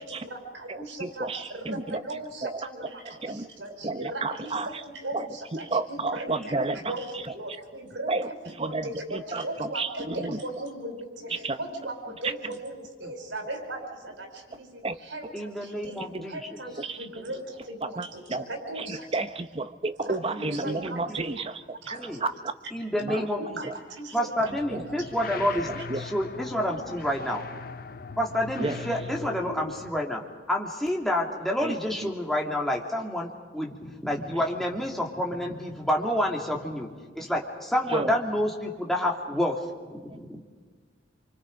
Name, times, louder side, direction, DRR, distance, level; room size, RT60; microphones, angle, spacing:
voice 1, 0.0-16.0 16.3-19.1 20.0-21.2 21.8-22.2 23.4-25.1, right 1 dB, 80° right, 3 dB, 4.9 m, -38 dB
voice 2, 0.7-2.0 2.4-2.6 3.0-3.5 3.8-4.8 5.1-7.3 8.1-10.4 11.3-11.6 12.2-12.3 14.8-15.0 16.0-16.3 16.8-17.0 17.8-18.5 18.8-22.5 23.0-23.3 23.6-23.7 24.4-24.9 25.3-25.4 25.7-26.1 28.6-28.9 31.6-32.1 37.9-38.2, right 3 dB, 30° right, 10 dB, 0.8 m, -32 dB
voice 3, 6.5-6.9 13.0-13.1 15.3-16.4 20.2-21.2 21.9-22.2 22.7-23.6 24.1-25.7 26.0-27.4 28.2-30.2 30.5-39.6 39.9-40.4, left 1 dB, ahead, -2 dB, 2.5 m, -29 dB
sound 1, 24.4-30.0, left 5 dB, 50° left, 0.6 m, -40 dB
28.0 x 25.0 x 5.2 m, 1.5 s
head